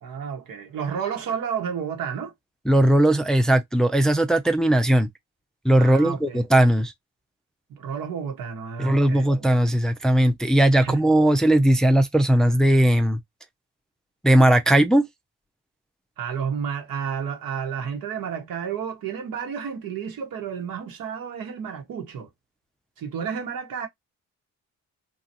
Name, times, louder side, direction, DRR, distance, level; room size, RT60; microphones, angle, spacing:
voice 1, 0.0-2.3 5.8-6.4 7.7-9.5 10.8-11.1 16.2-22.3 23.0-23.9, right 7 dB, 80° right, 1.4 m, -31 dB
voice 2, 2.7-5.1 5.6-6.9 8.8-13.2 14.2-15.1, right 1 dB, ahead, 0.5 m, -18 dB
2.9 x 2.4 x 2.8 m
cardioid pair, 70°, 34 cm